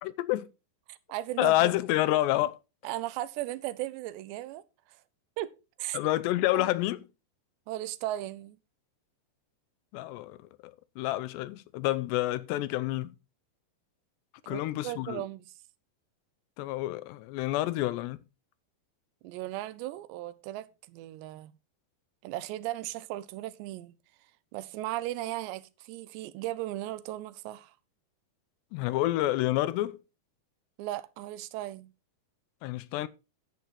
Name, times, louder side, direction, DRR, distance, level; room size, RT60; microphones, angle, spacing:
voice 1, 0.0-0.5 1.4-2.6 5.9-7.0 9.9-10.4 10.6-13.2 14.5-15.2 16.6-18.2 28.7-30.0 32.6-33.1, left 16 dB, 85° left, 2.8 m, -28 dB
voice 2, 0.9-1.7 2.8-4.6 5.4-6.0 6.5-6.7 7.7-8.6 14.4-15.5 19.2-21.5 22.2-24.0 24.5-27.7 30.8-31.9, right 15 dB, 85° right, 2.9 m, -36 dB
11.0 x 7.9 x 4.2 m
omnidirectional pair, 5.0 m